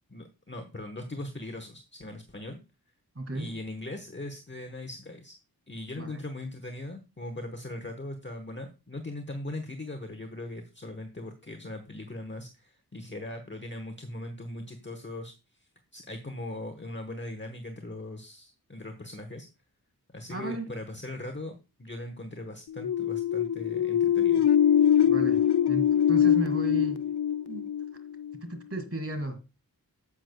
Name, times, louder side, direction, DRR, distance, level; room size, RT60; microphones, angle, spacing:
voice 1, 0.1-2.6 3.3-5.3 5.7-15.3 15.6-19.5 20.1-24.4, left 1 dB, 30° left, 1.1 m, -40 dB
voice 2, 3.2-3.5 6.0-6.1 20.3-20.7 25.1-27.0 27.5-27.7 28.5-29.4, right 2 dB, 35° right, 1.9 m, -34 dB
sound 1, 22.7-28.3, left 9 dB, 80° left, 0.5 m, -23 dB
9.8 x 7.9 x 2.2 m
wide cardioid pair, 50°, 39 cm